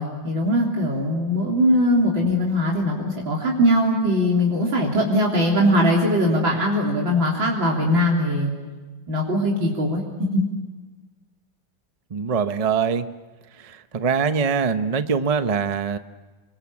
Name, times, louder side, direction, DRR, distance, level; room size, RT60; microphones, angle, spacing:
voice 1, 0.0-8.5 9.1-10.0 10.3-10.4, equal, 75° right, -2 dB, 4.2 m, -21 dB
voice 2, 12.1-13.1 13.5-16.0, right 6 dB, 50° right, 9 dB, 0.4 m, -23 dB
28.0 x 23.5 x 8.6 m, 1.3 s
omnidirectional pair, 2.1 m